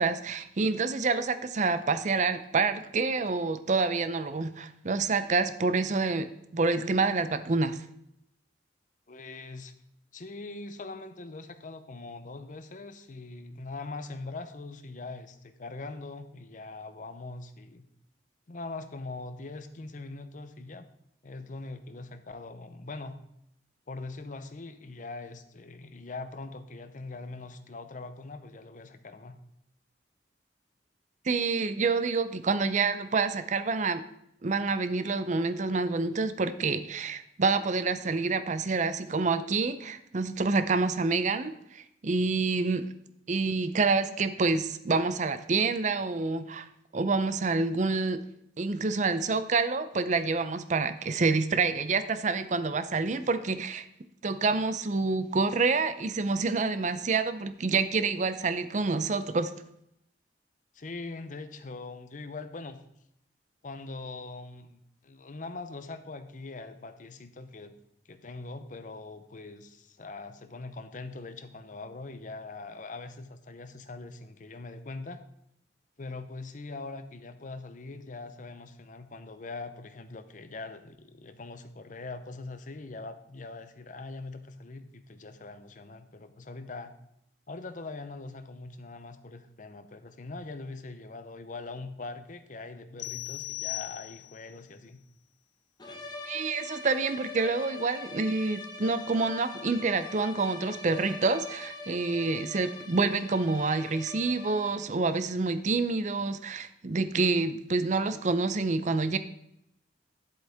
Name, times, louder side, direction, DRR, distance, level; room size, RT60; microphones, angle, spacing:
voice 1, 0.0-7.8 31.3-34.0 34.4-42.9 43.3-46.7 46.9-48.2 48.6-53.9 54.2-59.5 96.3-109.2, right 4 dB, 45° right, 12 dB, 0.5 m, -27 dB
voice 2, 9.1-9.7 10.1-17.8 18.5-20.9 21.2-23.2 23.9-29.4 60.7-62.8 63.6-67.7 68.0-75.2 76.0-86.9 87.5-95.0, left 3 dB, 45° left, 10 dB, 0.7 m, -42 dB
sound 1, 93.0-94.5, left 24 dB, 75° left, 0.3 m, -38 dB
sound 2, 95.8-105.0, left 3 dB, 25° left, 1.0 m, -42 dB
11.0 x 7.8 x 3.5 m, 0.77 s
head